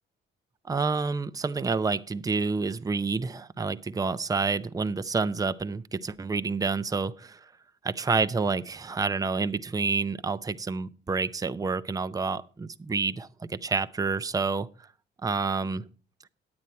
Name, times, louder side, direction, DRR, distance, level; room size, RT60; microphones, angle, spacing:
voice 1, 0.7-7.4 7.8-14.7 15.2-15.9, right 4 dB, 20° right, 0.6 m, -28 dB
9.7 x 9.1 x 4.3 m
cardioid pair, 90°, 20 cm